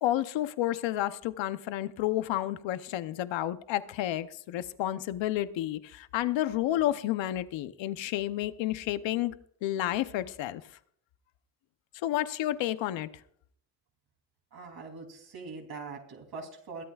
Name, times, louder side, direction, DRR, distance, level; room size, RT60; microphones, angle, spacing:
voice 1, 0.0-9.3 9.6-10.6 11.9-13.1, left 13 dB, 80° left, 0.9 m, -30 dB
voice 2, 14.5-16.8, right 4 dB, 55° right, 3.3 m, -42 dB
22.0 x 13.5 x 2.4 m
cardioid pair, 95°, 44 cm